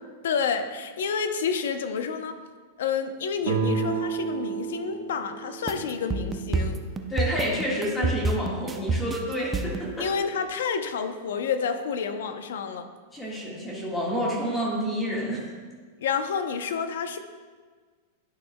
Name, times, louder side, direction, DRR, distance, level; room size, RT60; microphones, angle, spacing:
voice 1, 0.2-2.4 2.8-6.8 10.0-12.9 16.0-17.2, left 6 dB, 80° left, 8 dB, 0.7 m, -29 dB
sound 1, 3.4-7.0, right 6 dB, 75° right, 0.8 m, -31 dB
sound 2, 5.7-9.9, right 3 dB, 15° right, 0.5 m, -28 dB
voice 2, 7.1-10.1 13.1-15.4, equal, 10° left, -4 dB, 1.6 m, -29 dB
11.5 x 6.4 x 2.2 m, 1.5 s
supercardioid pair, 150°, 0 cm